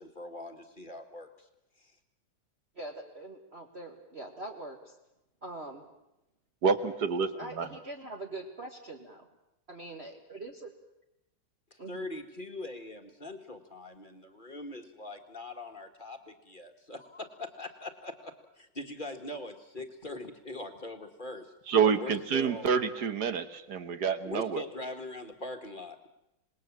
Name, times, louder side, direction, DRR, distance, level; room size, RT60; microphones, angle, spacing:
voice 1, 0.0-1.5 1.8-2.0 11.7-21.5 21.8-22.7 24.3-26.1, left 2 dB, 25° left, 5 dB, 1.8 m, -42 dB
voice 2, 2.8-5.0 5.4-5.8 7.3-9.3 9.7-10.7 11.8-12.1, right 2 dB, 35° right, 2 dB, 1.7 m, -43 dB
voice 3, 6.6-7.7 21.7-24.6, right 6 dB, 55° right, 11 dB, 1.7 m, -28 dB
26.5 x 20.5 x 7.3 m, 0.88 s
omnidirectional pair, 2.2 m